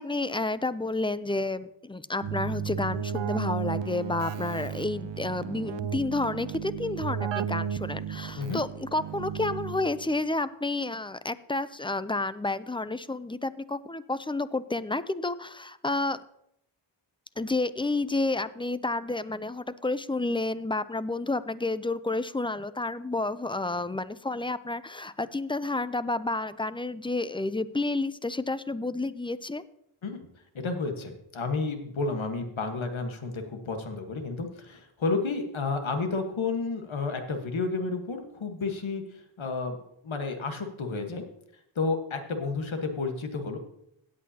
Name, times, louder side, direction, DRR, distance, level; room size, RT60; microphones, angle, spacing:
voice 1, 0.0-16.2 17.4-29.6, left 2 dB, 10° left, 15 dB, 0.3 m, -30 dB
Keyboard (musical), 2.2-10.1, right 8 dB, 65° right, 0.5 m, -34 dB
voice 2, 30.5-39.0 39.4-39.8 40.0-41.2 41.7-43.6, left 4 dB, 70° left, 5 dB, 1.4 m, -31 dB
17.0 x 8.4 x 2.8 m, 0.76 s
wide cardioid pair, 70°, 50 cm